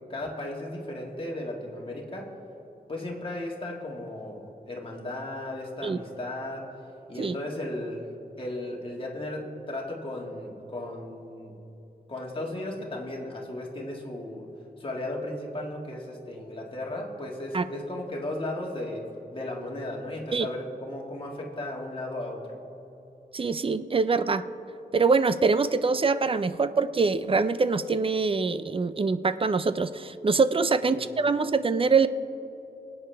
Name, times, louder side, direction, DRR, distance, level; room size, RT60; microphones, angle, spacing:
voice 1, 0.1-2.3 2.9-6.7 7.1-8.1 8.4-11.6 12.1-14.5 14.8-22.6 30.8-31.3, left 1 dB, 35° left, -2 dB, 1.9 m, -35 dB
voice 2, 23.3-24.4 24.9-32.1, right 4 dB, 35° right, 13 dB, 0.4 m, -24 dB
24.0 x 8.7 x 3.4 m, 3.0 s
wide cardioid pair, 145°, 16 cm